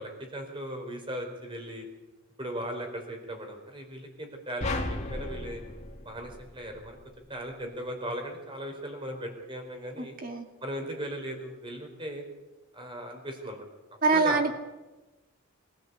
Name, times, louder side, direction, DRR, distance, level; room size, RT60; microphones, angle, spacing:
voice 1, 0.0-1.9 2.4-5.6 6.0-7.0 7.3-10.2 10.6-12.2 12.7-13.6 14.1-14.5, equal, 25° right, 4 dB, 4.4 m, -38 dB
sound 1, 4.6-7.0, left 2 dB, 30° left, 2.7 m, -35 dB
voice 2, 10.0-10.5 14.0-14.5, right 4 dB, 40° right, 5 dB, 2.5 m, -25 dB
24.5 x 16.0 x 8.3 m, 1.1 s
head